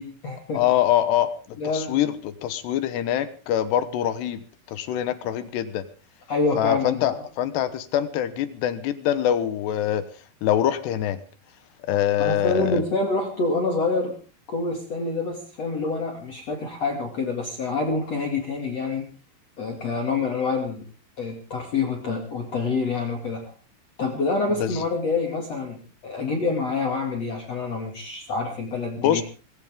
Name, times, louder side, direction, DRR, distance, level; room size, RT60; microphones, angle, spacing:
voice 1, 0.0-0.6 1.6-2.1 6.3-7.2 12.2-14.2 14.5-19.1 19.6-20.9 21.2-23.5 24.0-29.2, left 3 dB, 40° left, 2 dB, 2.6 m, -27 dB
voice 2, 0.5-5.9 6.6-10.0 10.4-11.2 11.9-12.8 24.5-24.8 29.0-29.2, left 11 dB, 70° left, 13 dB, 2.8 m, -24 dB
20.0 x 18.0 x 3.7 m, 0.35 s
omnidirectional pair, 5.8 m